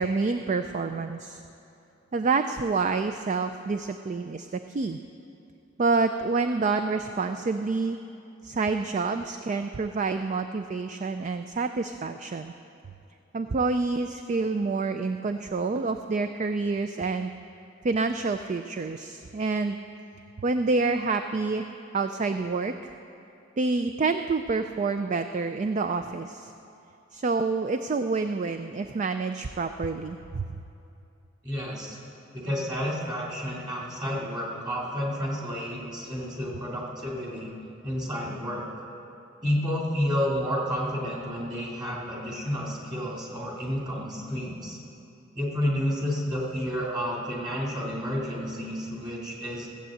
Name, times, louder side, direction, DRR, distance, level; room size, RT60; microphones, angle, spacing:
voice 1, 0.0-1.4 2.1-5.0 5.8-8.0 8.4-12.5 13.3-17.3 17.8-19.8 20.4-22.9 23.6-26.5 27.1-30.5, right 4 dB, 40° right, 8 dB, 0.4 m, -28 dB
voice 2, 31.4-32.0 32.3-37.5 37.8-38.6 39.4-44.8 45.3-49.7, equal, 20° right, -3 dB, 2.8 m, -30 dB
16.0 x 7.9 x 7.8 m, 2.7 s
head